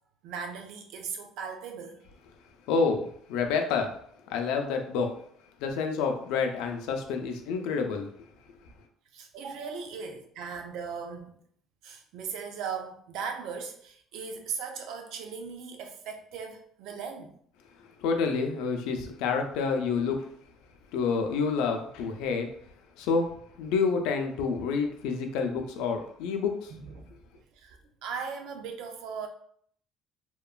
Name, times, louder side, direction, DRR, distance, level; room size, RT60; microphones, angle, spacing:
voice 1, 0.2-2.0 9.1-11.4 11.8-17.4 26.7-27.1 27.5-29.3, right 6 dB, 75° right, 4 dB, 0.4 m, -38 dB
voice 2, 2.7-3.9 4.3-5.1 5.6-8.1 18.0-20.3 20.9-22.5 23.0-23.3 23.6-26.7, left 5 dB, 85° left, 4 dB, 0.4 m, -28 dB
2.9 x 2.2 x 2.3 m, 0.64 s
cardioid pair, 130°, 0 cm